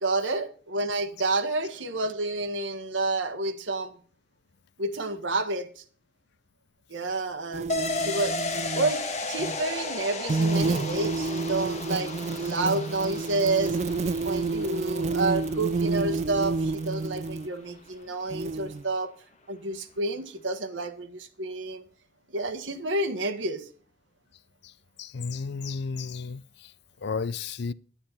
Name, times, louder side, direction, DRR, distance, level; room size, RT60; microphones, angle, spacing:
voice 1, 0.0-3.9 4.8-5.8 6.9-8.4 8.7-13.8 14.2-19.1 19.5-21.8 22.3-23.6, right 2 dB, 80° right, 1.5 m, -29 dB
sound 1, 7.5-8.9 9.4-9.6 10.3-17.5 18.3-18.8, right 3 dB, 35° right, 0.4 m, -29 dB
sound 2, 7.7-17.1 17.4-17.5, left 3 dB, 35° left, 1.3 m, -35 dB
voice 2, 25.0-26.7 27.0-27.7, left 4 dB, 65° left, 0.5 m, -33 dB
10.5 x 9.8 x 4.1 m
head